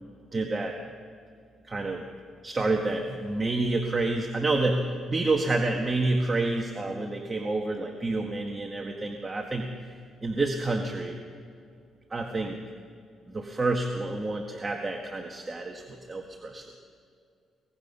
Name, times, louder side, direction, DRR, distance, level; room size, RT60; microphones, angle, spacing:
voice 1, 0.3-0.8 1.7-2.1 2.4-4.8 5.1-9.7 10.2-11.2 12.1-12.6 13.3-16.6, right 2 dB, 25° right, 2 dB, 1.7 m, -28 dB
23.0 x 20.0 x 5.6 m, 2.4 s
cardioid pair, 90°, 0 cm